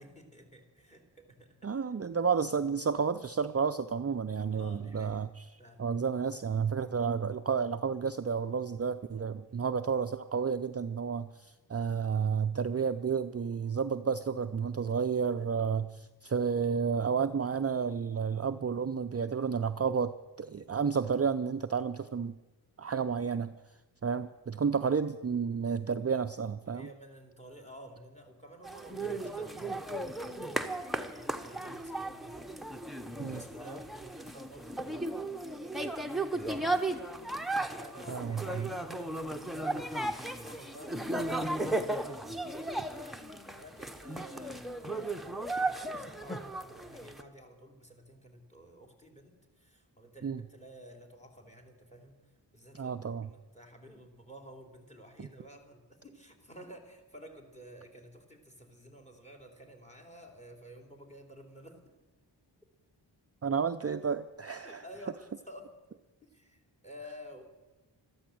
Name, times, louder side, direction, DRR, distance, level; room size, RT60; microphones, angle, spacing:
voice 1, 0.0-1.9 4.5-5.3 5.6-5.8 6.9-7.1 9.5-9.7 26.7-32.4 33.2-36.2 37.2-43.3 43.5-61.8 64.6-66.0 66.3-67.4, equal, 15° left, 5 dB, 3.2 m, -52 dB
voice 2, 1.6-5.5 5.8-22.4 22.8-23.5 24.0-26.9 33.2-33.4 38.1-38.7 50.2-50.4 52.7-53.3 55.2-55.3 63.4-64.8, right 6 dB, 35° right, 9 dB, 0.5 m, -31 dB
sound 1, 28.6-47.2, right 2 dB, ahead, 1.1 m, -35 dB
13.0 x 13.0 x 7.8 m, 1.1 s
cardioid pair, 55°, 45 cm